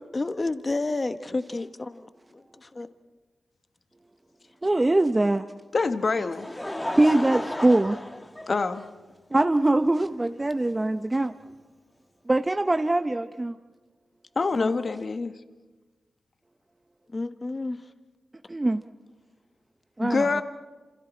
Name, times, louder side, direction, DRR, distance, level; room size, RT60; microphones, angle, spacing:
voice 1, 0.1-2.1 2.7-2.9 14.5-14.8 17.1-17.8, left 2 dB, 35° left, 10 dB, 1.2 m, -30 dB
voice 2, 4.6-5.4 7.0-8.0 9.3-11.3 12.3-13.5 18.5-18.8 20.0-20.4, right 2 dB, 25° right, 8 dB, 0.8 m, -22 dB
voice 3, 5.7-6.5 8.5-8.8 14.3-15.3 20.0-20.4, left 4 dB, 55° left, 8 dB, 1.4 m, -25 dB
Laughter, 5.9-9.1 9.9-10.0 11.5-11.6, left 1 dB, 15° left, 1.5 m, -34 dB
28.0 x 27.0 x 4.4 m, 1.3 s
cardioid pair, 55°, 0 cm